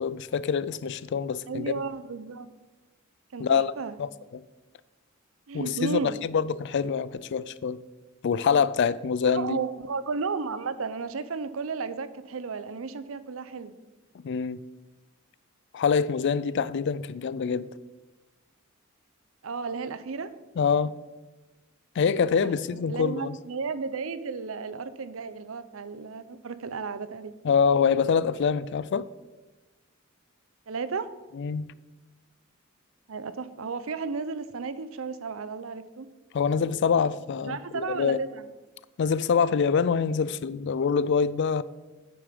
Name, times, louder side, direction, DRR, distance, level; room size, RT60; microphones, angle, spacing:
voice 1, 0.0-1.7 3.4-3.7 4.0-4.4 5.5-7.8 8.2-9.6 14.2-14.6 15.7-17.7 20.6-20.9 22.0-23.3 27.4-29.1 31.4-31.6 36.3-38.2 39.0-41.6, left 6 dB, 60° left, 0.4 m, -25 dB
voice 2, 1.5-2.5 3.3-3.9 5.5-6.2 9.3-13.7 19.4-20.3 22.0-22.1 22.4-27.3 30.7-31.1 33.1-36.1 37.4-38.5, right 4 dB, 80° right, 0.6 m, -33 dB
9.5 x 6.7 x 5.2 m
head